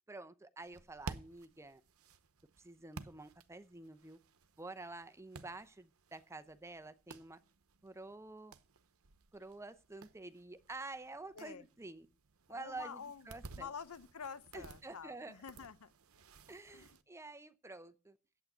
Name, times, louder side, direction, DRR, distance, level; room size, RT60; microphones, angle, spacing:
voice 1, 0.1-1.8 2.6-4.2 4.6-7.4 7.8-8.5 9.3-12.1 12.5-13.7 14.5-15.3 16.5-18.2, right 2 dB, 15° right, 0.6 m, -49 dB
sound 1, 0.6-17.0, right 3 dB, 80° right, 0.9 m, -55 dB
voice 2, 11.4-11.7 12.5-13.3 13.5-15.9 16.7-17.0, left 6 dB, 90° left, 0.7 m, -48 dB
8.6 x 8.3 x 7.8 m
head